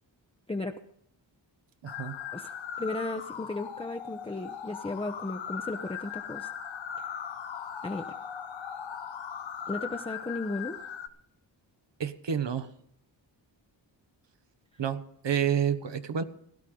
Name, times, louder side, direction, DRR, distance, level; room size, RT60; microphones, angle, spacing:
voice 1, 1.8-2.2 12.0-12.7 14.8-16.2, right 8 dB, 70° right, 10 dB, 1.3 m, -29 dB
sound 1, 1.9-11.1, left 8 dB, 85° left, 1.2 m, -39 dB
voice 2, 2.8-6.5 7.8-8.1 9.7-10.8, left 2 dB, 15° left, 5 dB, 0.8 m, -35 dB
17.0 x 12.0 x 3.9 m, 0.71 s
wide cardioid pair, 80°, 45 cm